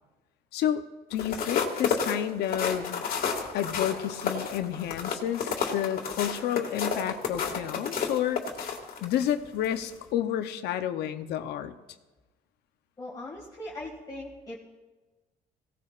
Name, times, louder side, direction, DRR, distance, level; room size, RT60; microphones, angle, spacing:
voice 1, 0.5-0.8 1.1-3.0 3.5-8.4 9.0-11.7, left 10 dB, 80° left, 10 dB, 0.8 m, -30 dB
sound 1, 1.1-9.3 9.8-10.0, left 6 dB, 60° left, 1.9 m, -31 dB
voice 2, 13.0-14.6, left 1 dB, 20° left, -5 dB, 2.1 m, -40 dB
18.5 x 17.0 x 2.5 m, 1.2 s
cardioid pair, 110°, 17 cm